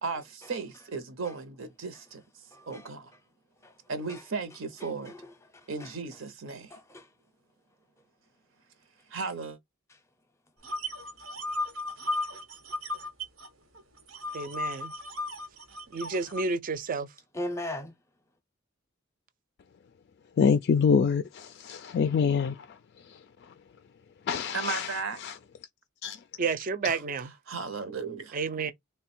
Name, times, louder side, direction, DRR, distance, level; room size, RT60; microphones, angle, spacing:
voice 1, 0.0-2.2 2.7-3.1 3.9-5.1 5.7-6.8 9.1-9.6 24.5-25.2 26.8-27.0 27.5-28.4, right 4 dB, 70° right, 0.8 m, -35 dB
voice 2, 2.5-2.9 3.6-3.8 4.1-4.2 4.8-5.9 6.7-7.1 17.3-17.9, left 1 dB, 15° left, 0.7 m, -39 dB
sound 1, 10.6-13.5 13.8-16.4, left 2 dB, 90° right, 1.2 m, -35 dB
voice 3, 14.3-14.9 15.9-17.1 26.4-27.3 28.3-28.7, right 4 dB, 40° right, 0.4 m, -30 dB
voice 4, 20.4-22.8 23.1-23.2 23.5-23.6 24.3-24.9 25.2-25.3 26.0-26.2, left 6 dB, 55° left, 0.3 m, -26 dB
3.4 x 2.2 x 4.2 m
head